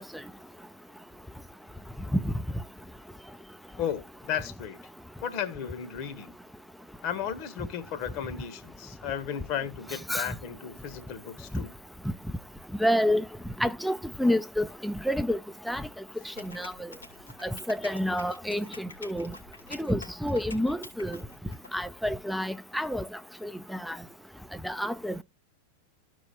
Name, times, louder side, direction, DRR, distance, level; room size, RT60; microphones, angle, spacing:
voice 1, 3.8-4.8 5.2-6.3 7.0-11.7, left 9 dB, 45° left, 1.1 m, -34 dB
voice 2, 12.8-13.2 13.6-15.4 15.7-15.8 16.4-16.7 17.4-19.3 19.8-21.2 21.7-23.1 23.4-24.0 24.6-25.2, equal, ahead, 0.4 m, -28 dB
sound 1, 16.3-21.7, left 3 dB, 80° left, 2.5 m, -46 dB
14.0 x 4.7 x 2.8 m
figure-of-eight pair, 90°, 0 cm